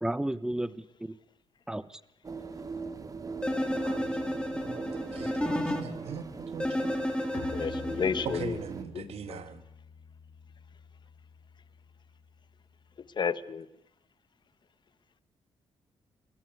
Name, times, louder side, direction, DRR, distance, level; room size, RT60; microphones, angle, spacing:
voice 1, 0.0-1.2 1.7-2.0, right 1 dB, 5° right, 0.9 m, -33 dB
sound 1, 2.2-8.8, right 4 dB, 35° right, 2.9 m, -40 dB
sound 2, 3.4-5.8 6.6-8.4, left 1 dB, 10° left, 4.4 m, -32 dB
voice 2, 3.8-6.9 8.2-9.6, right 7 dB, 75° right, 2.7 m, -41 dB
Bowed string instrument, 7.3-12.9, left 6 dB, 80° left, 7.3 m, -48 dB
voice 3, 7.5-8.5 8.9-9.4 13.2-13.6, left 6 dB, 45° left, 1.3 m, -31 dB
27.5 x 21.5 x 8.0 m
cardioid pair, 100°, 10 cm